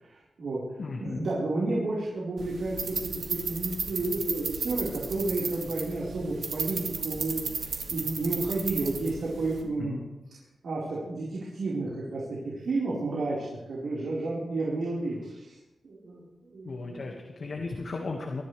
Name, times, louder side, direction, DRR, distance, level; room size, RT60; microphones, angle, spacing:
voice 1, 0.0-0.6 1.0-10.0 10.6-15.6 15.8-17.5, right 2 dB, 70° right, -7 dB, 4.5 m, -32 dB
voice 2, 0.8-1.3 9.8-10.0 16.7-18.4, left 3 dB, 55° left, 1 dB, 1.8 m, -35 dB
sound 1, 2.4-9.6, right 5 dB, 90° right, 2.5 m, -34 dB
23.0 x 14.5 x 3.4 m, 0.99 s
wide cardioid pair, 140°, 0 cm